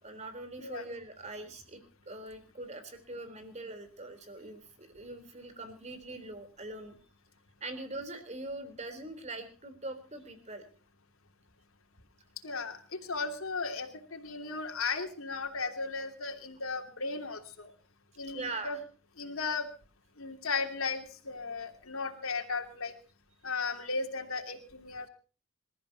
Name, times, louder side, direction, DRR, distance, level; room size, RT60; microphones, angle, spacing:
voice 1, 0.0-7.0 7.6-10.7 18.2-18.8, right 2 dB, 35° right, 9 dB, 3.8 m, -42 dB
voice 2, 12.4-17.7 18.2-18.8 19.2-19.7 20.2-22.9 23.4-25.1, left 4 dB, 80° left, 3 dB, 2.9 m, -36 dB
27.0 x 14.0 x 2.9 m, 0.37 s
head